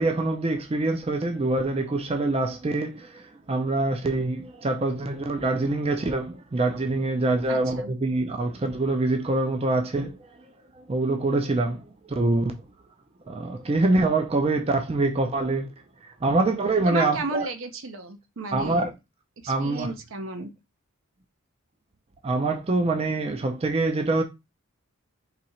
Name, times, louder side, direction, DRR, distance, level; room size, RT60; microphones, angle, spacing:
voice 1, 0.0-10.2 10.9-11.8 12.2-12.5 13.3-15.7 16.2-17.5 18.5-18.9 19.5-19.9 22.2-24.2, right 2 dB, 25° right, 0.4 m, -25 dB
voice 2, 7.5-7.9 16.9-18.9 19.4-20.5, right 2 dB, 65° right, 0.7 m, -33 dB
4.0 x 2.8 x 4.2 m
head